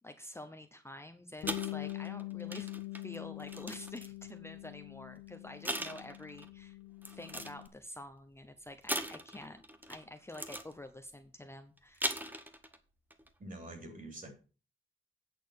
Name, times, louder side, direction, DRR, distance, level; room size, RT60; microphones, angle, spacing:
voice 1, 0.0-6.8 7.1-12.5, left 1 dB, 10° left, 7 dB, 0.7 m, -48 dB
Bass guitar, 1.4-7.7, left 18 dB, 80° left, 0.6 m, -44 dB
sound 1, 1.4-4.3 5.1-5.2 5.6-6.5 7.0-7.7 8.9-10.0 10.3-10.7 11.8-12.8 13.1-13.3, right 1 dB, 10° right, 1.0 m, -39 dB
voice 2, 13.4-14.3, right 1 dB, 40° right, 3 dB, 3.5 m, -46 dB
8.7 x 6.3 x 6.3 m, 0.36 s
wide cardioid pair, 140°, 21 cm